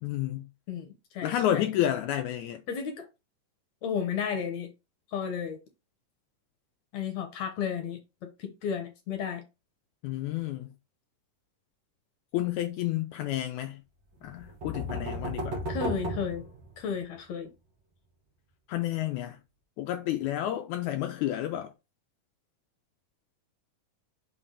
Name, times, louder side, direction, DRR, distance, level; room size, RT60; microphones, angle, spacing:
voice 1, 0.0-0.5 1.2-2.6 10.0-10.7 12.3-13.8 14.2-15.6 18.7-19.4 19.8-21.7, left 12 dB, 85° left, 1.7 m, -30 dB
voice 2, 0.7-1.7 2.7-3.1 3.8-4.7 5.1-5.6 6.9-9.4 15.7-16.5 16.8-17.5, left 7 dB, 65° left, 2.0 m, -33 dB
sound 1, 14.2-17.2, equal, 75° right, 1.0 m, -35 dB
5.8 x 3.3 x 5.6 m
omnidirectional pair, 3.9 m